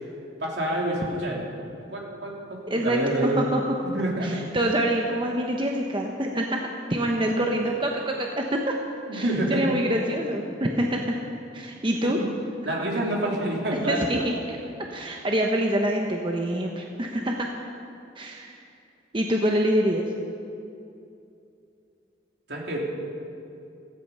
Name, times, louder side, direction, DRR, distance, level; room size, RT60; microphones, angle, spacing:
voice 1, 0.4-1.4 1.9-3.4 3.8-4.4 9.1-9.7 12.0-12.1 12.6-14.2 22.5-22.8, right 1 dB, 65° right, -2 dB, 3.2 m, -27 dB
voice 2, 2.7-3.6 4.2-8.8 9.1-11.2 11.5-12.2 13.7-17.5 18.2-18.6 19.1-20.0, right 1 dB, 25° right, 1 dB, 0.9 m, -26 dB
16.5 x 15.0 x 5.6 m, 2.7 s
head